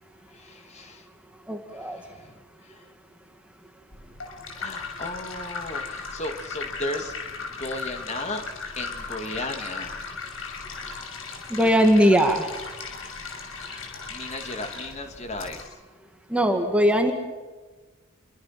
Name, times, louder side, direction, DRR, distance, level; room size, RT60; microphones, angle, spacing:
voice 1, 0.3-1.1 1.7-2.9 4.5-8.4 8.8-10.0 13.6-15.8, left 2 dB, 35° left, 5 dB, 2.6 m, -36 dB
voice 2, 1.5-2.0 11.5-12.5 16.3-17.1, equal, 5° right, 4 dB, 2.1 m, -20 dB
sound 1, 3.9-15.6, left 4 dB, 75° left, 6.0 m, -37 dB
29.0 x 23.5 x 6.1 m, 1.3 s
head